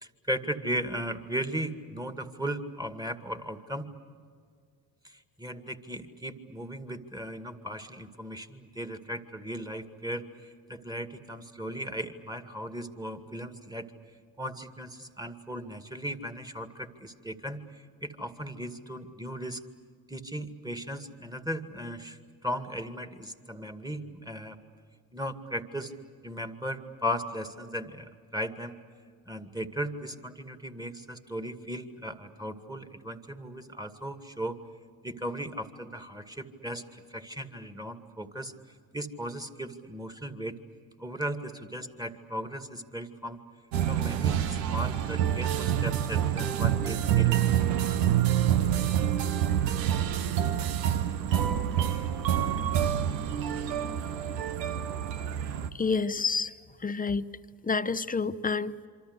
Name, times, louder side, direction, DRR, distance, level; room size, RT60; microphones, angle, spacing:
voice 1, 0.0-3.9 5.0-13.9 14.4-19.6 20.1-24.6 25.1-25.9 26.2-28.8 29.3-34.6 35.0-38.5 38.9-40.6 41.0-43.4 43.9-47.8, equal, 10° right, 8 dB, 2.2 m, -37 dB
sound 1, 43.7-55.7, right 10 dB, 85° right, 0.9 m, -27 dB
voice 2, 55.7-57.2 57.6-58.9, left 4 dB, 15° left, 14 dB, 0.9 m, -29 dB
27.0 x 25.0 x 8.2 m, 2.1 s
hypercardioid pair, 45°, 48 cm